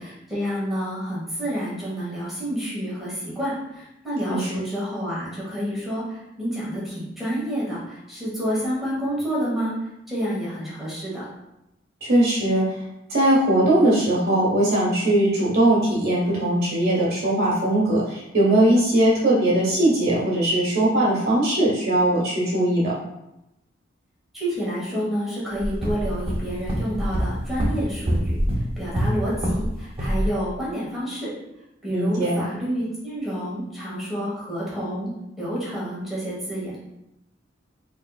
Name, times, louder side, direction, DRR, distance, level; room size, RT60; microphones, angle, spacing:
voice 1, 0.0-9.7 10.1-11.2 24.3-28.4 28.8-31.3 31.8-35.1 35.4-36.8, equal, ahead, -8 dB, 1.4 m, -29 dB
voice 2, 12.0-12.7 13.1-22.9 31.9-32.4, right 1 dB, 55° right, -5 dB, 1.3 m, -20 dB
sound 1, 25.6-29.7 30.0-30.3, equal, 30° right, 0.7 m, -25 dB
4.1 x 3.5 x 2.4 m, 0.88 s
head